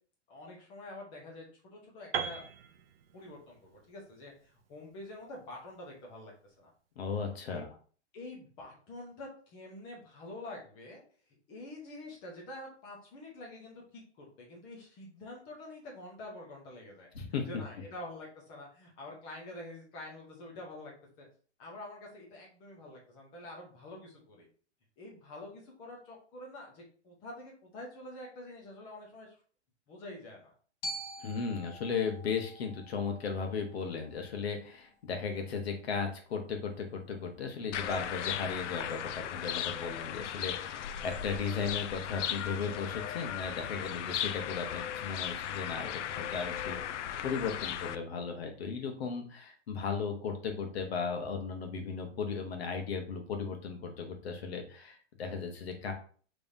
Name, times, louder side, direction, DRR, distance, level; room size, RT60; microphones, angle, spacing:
voice 1, 0.3-2.4 3.1-6.7 7.5-7.6 8.1-11.0 11.5-20.9 21.2-21.3 21.6-24.5 25.0-29.4 29.9-30.5 35.3-35.5, left 1 dB, 15° left, -1 dB, 0.8 m, -47 dB
Piano, 2.1-6.1, right 7 dB, 55° right, 0.6 m, -41 dB
voice 2, 7.0-7.7 17.1-17.5 31.2-47.0 47.2-55.9, left 5 dB, 60° left, 4 dB, 1.3 m, -36 dB
Glockenspiel, 30.8-34.9, equal, 40° left, 1.2 m, -46 dB
sound 1, 37.7-48.0, left 10 dB, 85° left, 0.5 m, -37 dB
5.3 x 3.4 x 2.7 m, 0.42 s
hypercardioid pair, 175°, 35 cm